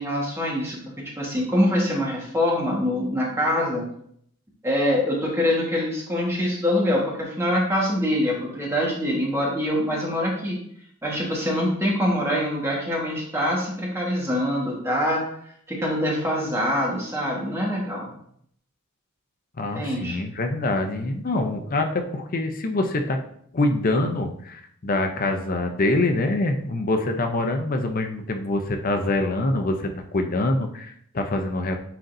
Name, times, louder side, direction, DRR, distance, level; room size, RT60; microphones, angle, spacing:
voice 1, 0.0-3.9 4.6-10.6 11.0-15.3 15.7-18.1 19.7-20.2, equal, 10° right, -3 dB, 1.4 m, -24 dB
voice 2, 19.6-23.2 23.5-31.8, left 2 dB, 40° left, 5 dB, 0.6 m, -25 dB
10.0 x 3.9 x 2.6 m, 0.67 s
head